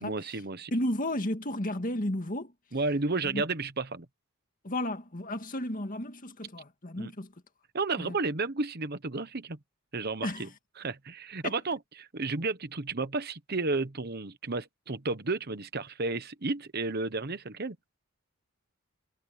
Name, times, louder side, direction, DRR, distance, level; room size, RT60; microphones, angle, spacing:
voice 1, 0.0-0.7 2.7-4.1 7.0-7.1 7.7-9.6 9.9-10.5 10.8-17.8, right 3 dB, 50° right, 1.1 m, -32 dB
voice 2, 0.7-2.5 3.2-3.4 4.6-7.3 8.0-8.2 10.2-10.5 11.4-11.6, left 1 dB, 40° left, 2.1 m, -33 dB
head